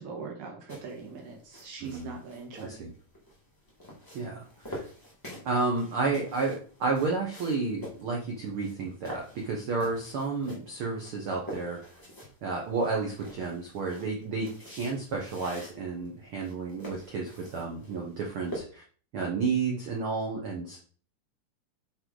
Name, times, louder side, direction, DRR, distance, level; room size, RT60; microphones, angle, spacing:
voice 1, 0.0-2.9, right 4 dB, 65° right, 1 dB, 2.8 m, -42 dB
sound 1, 0.7-18.6, equal, 20° left, 0.5 m, -47 dB
voice 2, 1.8-2.2 2.6-2.9 4.1-4.8 5.4-11.8 12.4-18.8 19.1-20.8, right 4 dB, 80° right, 0 dB, 1.2 m, -31 dB
6.4 x 4.5 x 3.9 m, 0.43 s
omnidirectional pair, 3.9 m